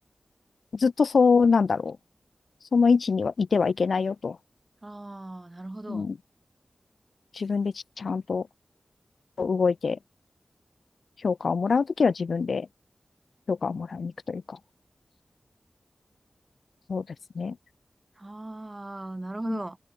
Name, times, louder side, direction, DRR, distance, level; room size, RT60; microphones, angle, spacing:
voice 1, 0.7-2.0 2.7-4.4 5.9-6.1 7.3-8.5 9.4-10.0 11.2-12.7 13.5-14.6 16.9-17.0 17.4-17.6 19.5-19.6, left 5 dB, 85° left, 0.4 m, -24 dB
voice 2, 4.8-6.1 18.2-19.8, right 2 dB, 30° right, 1.0 m, -37 dB
cardioid pair, 45°, 0 cm